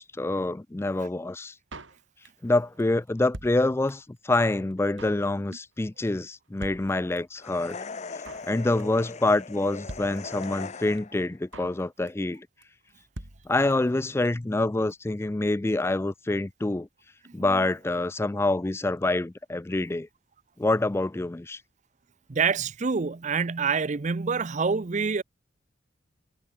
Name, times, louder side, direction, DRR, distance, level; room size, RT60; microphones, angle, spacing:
voice 1, 0.0-1.5 2.4-7.8 8.4-12.5 13.5-16.9 17.3-20.1 20.6-21.6, left 2 dB, 15° left, 0.3 m, -26 dB
Drum kit, 1.7-2.5 2.8-2.9 3.1-4.2 4.4-4.5 4.7-5.3 5.5-5.8 6.1-6.2 6.3-6.4 6.6-7.4 7.7-7.8 8.0-8.5 8.8-9.1 9.3-9.4 9.6-9.7 9.9-10.7 11.0-11.1 11.2-11.8 12.1-12.3 12.6-12.7 12.9-13.0 13.1-14.0 14.2-14.3 14.5-14.6, right 1 dB, 80° right, 4.1 m, -43 dB
sound 1, 7.4-11.3, left 4 dB, 35° left, 0.7 m, -39 dB
voice 2, 17.3-17.6 22.3-25.2, right 5 dB, 40° right, 0.5 m, -27 dB
head